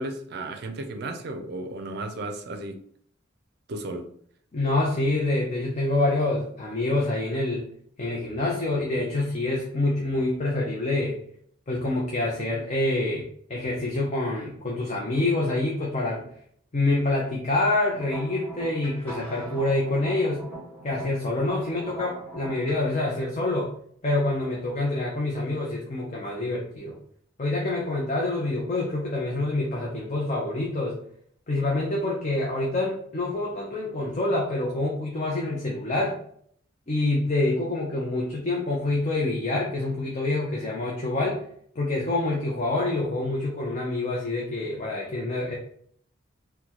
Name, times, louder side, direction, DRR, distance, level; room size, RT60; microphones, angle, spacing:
voice 1, 0.0-2.8 3.7-4.1, right 2 dB, 55° right, 6 dB, 0.5 m, -34 dB
voice 2, 4.5-7.6 8.0-11.1 11.7-13.2 13.5-16.3 16.7-20.4 20.8-23.7 24.0-27.0 27.4-31.0 31.5-36.2 36.9-41.4 41.8-45.6, left 2 dB, 35° left, -2 dB, 0.6 m, -26 dB
sound 1, 17.8-22.8, right 2 dB, 10° left, 1.3 m, -41 dB
3.8 x 2.2 x 2.9 m, 0.63 s
head